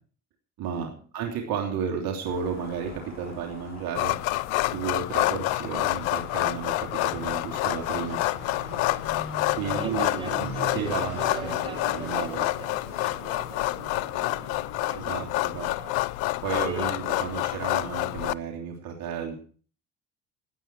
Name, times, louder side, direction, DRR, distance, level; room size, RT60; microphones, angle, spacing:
voice 1, 0.6-4.2 4.7-8.2 9.6-12.5 14.9-15.7 16.4-19.3, right 7 dB, 60° right, 1 dB, 3.2 m, -33 dB
sound 1, 2.2-11.4, left 3 dB, 30° left, 6.7 m, -47 dB
sound 2, 3.9-18.3, left 18 dB, 75° left, 0.6 m, -28 dB
Fixed-wing aircraft airplane, 5.2-15.0, right 3 dB, 90° right, 7.6 m, -42 dB
voice 2, 9.7-10.9 11.2-12.7 13.0-15.0 15.3-17.4, right 3 dB, 15° right, 4 dB, 5.5 m, -43 dB
19.0 x 9.3 x 4.6 m, 0.41 s
hypercardioid pair, 60°, 40 cm